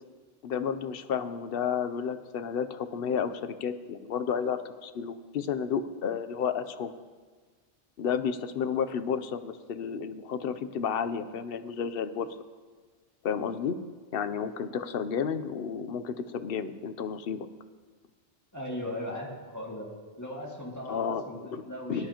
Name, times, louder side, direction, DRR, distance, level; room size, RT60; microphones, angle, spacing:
voice 1, 0.4-6.9 8.0-12.3 13.2-13.8 14.1-17.5 20.9-21.2 21.5-21.6 21.9-22.1, left 7 dB, 60° left, 11 dB, 0.7 m, -31 dB
voice 2, 18.5-19.9 20.2-22.1, equal, 15° left, -3 dB, 2.1 m, -38 dB
18.0 x 10.0 x 2.9 m, 1.5 s
omnidirectional pair, 1.2 m